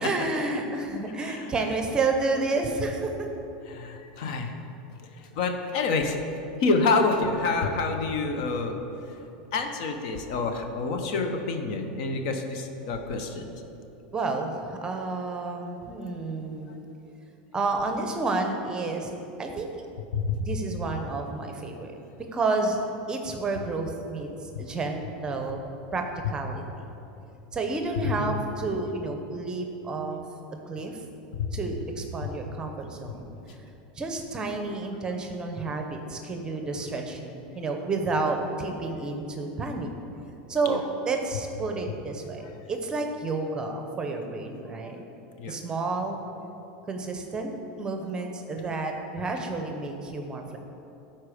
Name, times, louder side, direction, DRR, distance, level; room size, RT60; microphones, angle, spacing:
voice 1, 0.0-3.3 14.1-16.8 17.5-19.1 19.4-19.7 20.4-21.9 22.3-22.8 23.1-24.3 24.6-25.6 25.9-26.6 27.5-30.2 30.7-31.0 31.5-33.6 34.0-39.9 40.5-45.0 45.5-46.2 46.9-50.6, right 3 dB, 15° right, 4 dB, 0.8 m, -30 dB
voice 2, 1.2-1.5 3.7-4.5 5.2-6.2 6.6-8.8 9.5-13.5 20.1-20.4 24.5-24.6 28.0-28.3 31.4-31.5 32.2-32.4 45.4-45.6, left 4 dB, 60° left, 5 dB, 1.0 m, -27 dB
12.5 x 4.5 x 5.0 m, 2.9 s
supercardioid pair, 140°, 5 cm